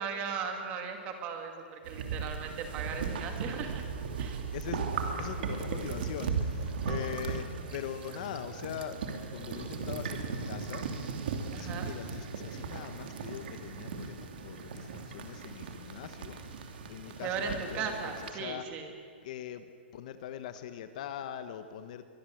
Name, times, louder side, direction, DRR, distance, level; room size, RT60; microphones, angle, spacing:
voice 1, 0.0-3.8 4.2-4.4 11.5-11.9 17.2-18.9, right 6 dB, 20° right, 5 dB, 2.4 m, -37 dB
sound 1, 1.9-18.3, right 5 dB, 55° right, 3.0 m, -37 dB
voice 2, 4.5-9.0 9.3-10.9 11.5-18.9 19.2-19.6 19.9-22.0, left 10 dB, 40° left, 10 dB, 1.1 m, -42 dB
23.5 x 22.0 x 7.9 m, 2.2 s
hypercardioid pair, 175°, 6 cm